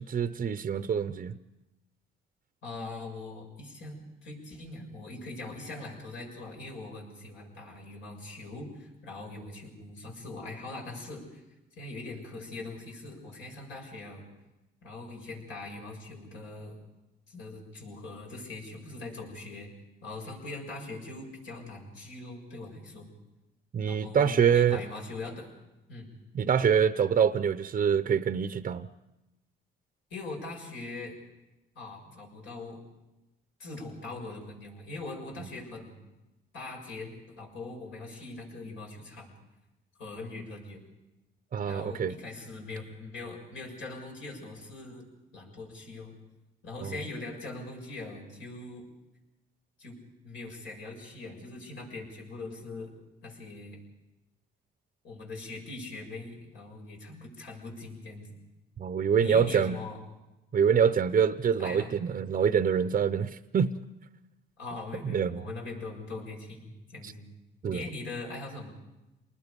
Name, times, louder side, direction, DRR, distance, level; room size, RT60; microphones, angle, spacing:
voice 1, 0.0-1.4 23.7-24.8 26.3-28.9 41.5-42.2 46.8-47.0 58.8-59.8 60.5-63.8 65.0-65.4 67.6-67.8, right 7 dB, 40° right, 0.7 m, -25 dB
voice 2, 2.6-11.4 11.8-14.3 14.8-16.8 17.3-19.7 20.0-23.1 23.8-25.5 25.9-26.1 30.1-31.1 31.7-32.8 33.6-36.0 36.5-39.3 40.0-40.8 41.6-45.0 45.3-46.1 46.6-48.8 49.8-50.0 50.2-52.9 53.2-53.8 55.0-58.3 59.2-60.0 61.6-62.0 64.6-67.2 67.7-68.7, left 2 dB, 75° left, 6.7 m, -41 dB
28.5 x 20.5 x 5.3 m
cardioid pair, 90°, 20 cm